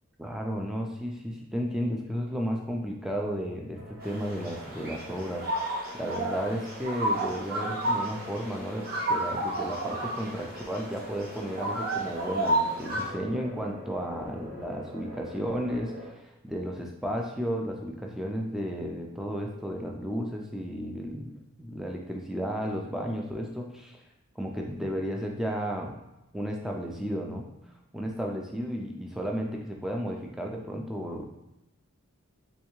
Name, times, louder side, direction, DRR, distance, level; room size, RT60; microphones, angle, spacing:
voice 1, 0.2-5.5 5.9-24.0 24.4-26.0 26.3-27.5 27.9-31.2, equal, ahead, 0 dB, 0.3 m, -33 dB
sound 1, 3.8-16.1, left 1 dB, 60° right, 1.1 m, -45 dB
sound 2, 4.0-13.1, right 1 dB, 40° right, 0.8 m, -32 dB
3.3 x 3.1 x 3.0 m, 0.92 s
head